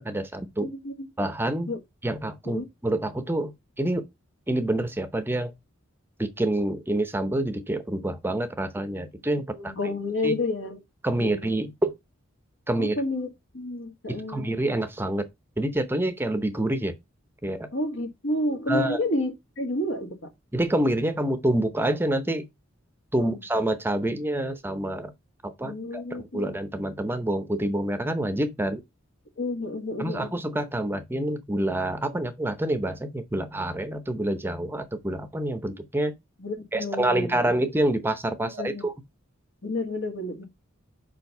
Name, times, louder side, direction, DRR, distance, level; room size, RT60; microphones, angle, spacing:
voice 1, 0.0-0.7 1.2-1.7 2.0-4.0 4.5-5.5 6.2-9.7 10.2-10.3 11.0-11.9 12.7-13.0 14.3-15.3 15.6-16.9 17.4-17.7 18.7-19.0 20.5-22.5 23.1-25.1 25.4-28.8 30.0-36.1 36.7-38.9, right 1 dB, 10° right, 0.7 m, -27 dB
voice 2, 0.6-1.1 1.7-1.8 2.5-2.7 9.5-10.8 11.2-11.5 12.8-13.3 13.5-14.5 17.7-20.2 23.2-23.4 25.6-26.5 29.4-30.3 36.4-37.6 38.4-38.8 39.6-40.4, left 1 dB, 70° left, 1.8 m, -30 dB
5.0 x 4.6 x 5.3 m
head